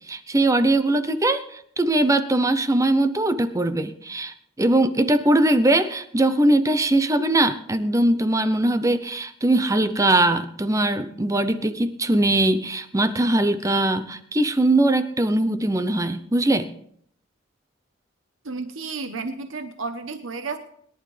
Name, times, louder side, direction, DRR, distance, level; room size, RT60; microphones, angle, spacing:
voice 1, 0.1-16.7, right 1 dB, 15° right, 10 dB, 0.7 m, -21 dB
voice 2, 18.4-20.6, right 4 dB, 90° right, 8 dB, 1.0 m, -32 dB
22.0 x 11.0 x 3.3 m, 0.66 s
head